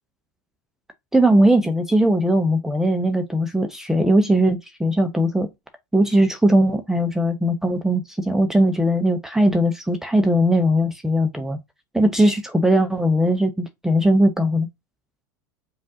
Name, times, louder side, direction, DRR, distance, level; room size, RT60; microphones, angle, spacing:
voice 1, 1.1-5.5 5.9-11.6 11.9-14.7, right 1 dB, 5° right, 0.6 m, -19 dB
5.2 x 2.4 x 2.7 m
hypercardioid pair, 85°, 10 cm